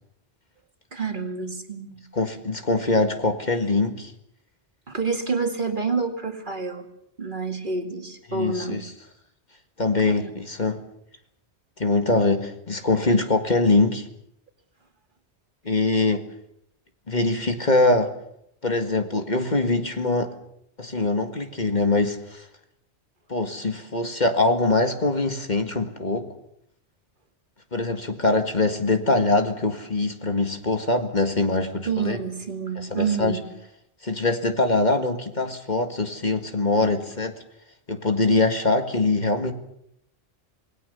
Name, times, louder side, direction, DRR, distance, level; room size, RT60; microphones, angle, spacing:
voice 1, 0.9-2.0 4.9-6.9 7.2-8.8 10.0-10.3 15.9-16.1 17.3-17.4 31.9-33.5, right 4 dB, 45° right, 5 dB, 2.4 m, -28 dB
voice 2, 2.1-4.1 8.3-8.9 9.8-10.8 11.8-14.1 15.7-16.2 17.1-18.1 18.6-20.3 20.8-22.5 23.3-26.3 27.7-32.2 32.9-33.4 34.0-37.3 37.9-39.5, left 2 dB, 40° left, 6 dB, 2.0 m, -23 dB
27.5 x 20.0 x 6.9 m, 0.76 s
omnidirectional pair, 1.1 m